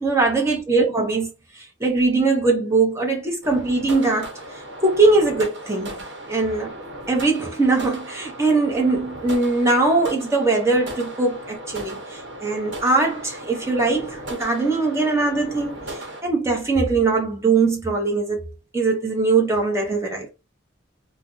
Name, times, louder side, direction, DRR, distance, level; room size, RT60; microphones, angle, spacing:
voice 1, 0.0-6.7 7.1-18.5 18.7-20.3, right 3 dB, 15° right, 0.8 m, -21 dB
sound 1, 3.4-16.2, right 1 dB, 65° right, 1.0 m, -36 dB
2.4 x 2.1 x 3.7 m
head